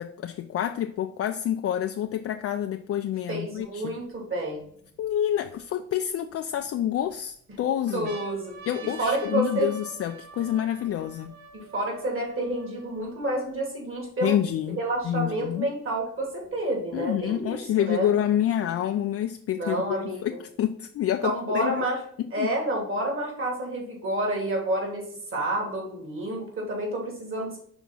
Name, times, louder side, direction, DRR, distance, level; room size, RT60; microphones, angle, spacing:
voice 1, 0.0-3.9 5.0-8.1 8.7-11.3 14.2-14.8 15.0-15.7 16.9-21.8 22.4-22.5, left 10 dB, 50° left, 7 dB, 0.4 m, -28 dB
voice 2, 3.3-4.6 7.9-8.5 8.8-9.7 11.5-14.4 14.8-18.1 19.5-20.4 21.2-22.0 22.3-25.0 25.3-27.6, right 1 dB, 45° right, -1 dB, 2.7 m, -29 dB
sound 1, 3.6-3.7 4.3-5.6 6.3-7.1 7.5-7.6 7.9-13.5 14.2-14.3 14.5-15.5 16.4-17.5, right 4 dB, 70° right, 1.6 m, -46 dB
6.1 x 3.6 x 5.5 m, 0.63 s
cardioid pair, 90°, 30 cm